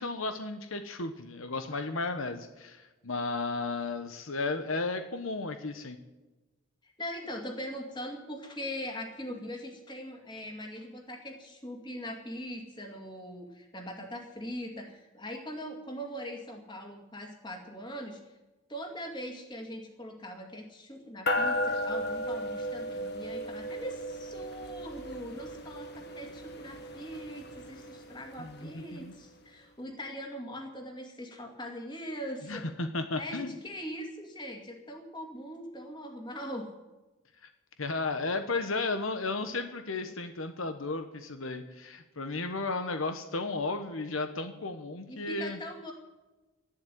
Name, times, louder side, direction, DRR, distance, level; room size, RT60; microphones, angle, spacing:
voice 1, 0.0-6.0 28.4-29.1 32.4-33.5 37.8-45.6, left 3 dB, 75° left, 8 dB, 1.1 m, -34 dB
voice 2, 6.8-18.2 18.7-32.6 33.2-36.7 45.1-45.9, equal, 20° left, 3 dB, 2.4 m, -41 dB
sound 1, 21.3-28.9, left 1 dB, 50° left, 1.6 m, -35 dB
13.0 x 11.5 x 9.3 m, 1.1 s
head